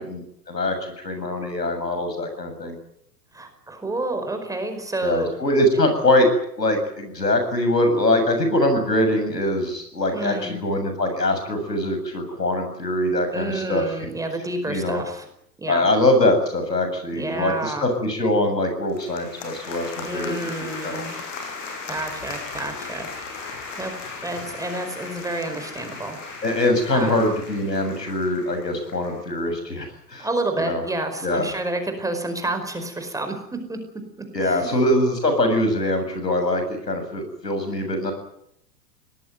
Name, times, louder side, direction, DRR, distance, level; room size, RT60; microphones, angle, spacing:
voice 1, 0.0-2.8 5.0-6.3 6.6-13.8 14.7-15.0 15.7-20.5 20.8-21.0 26.4-30.3 30.7-30.8 31.2-31.5 34.3-38.1, left 1 dB, 80° left, 6 dB, 7.4 m, -23 dB
voice 2, 3.3-5.3 10.1-10.6 13.3-15.3 15.6-15.9 17.1-17.9 20.0-21.2 21.9-23.9 24.2-26.2 26.9-27.1 30.2-33.4 33.7-33.8 34.4-34.8, right 2 dB, 5° right, 6 dB, 4.9 m, -29 dB
sound 1, 18.9-29.2, left 4 dB, 50° left, 7.6 m, -37 dB
24.0 x 19.0 x 9.5 m, 0.75 s
figure-of-eight pair, 100°, 48 cm